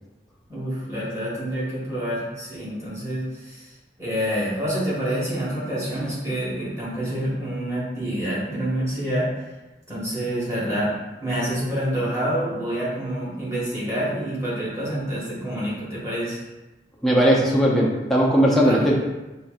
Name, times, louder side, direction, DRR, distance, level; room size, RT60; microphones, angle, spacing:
voice 1, 0.5-3.7 4.0-9.3 9.9-10.9 11.2-16.4 18.6-18.9, equal, 15° right, -8 dB, 1.3 m, -27 dB
voice 2, 17.0-18.9, equal, ahead, -4 dB, 0.5 m, -18 dB
5.5 x 2.5 x 2.4 m, 1.1 s
head